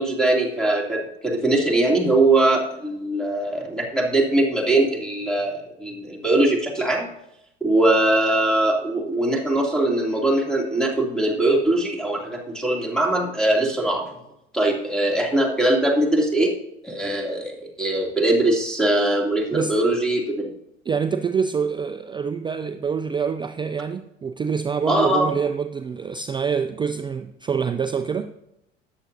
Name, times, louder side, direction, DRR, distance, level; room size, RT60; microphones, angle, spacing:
voice 1, 0.0-7.1 7.6-14.1 14.5-16.5 16.8-20.2 24.9-25.3, right 2 dB, ahead, 2.6 m, -21 dB
voice 2, 19.5-19.9 20.9-28.3, right 6 dB, 15° right, 0.4 m, -26 dB
13.0 x 9.5 x 2.7 m
figure-of-eight pair, 70°, 32 cm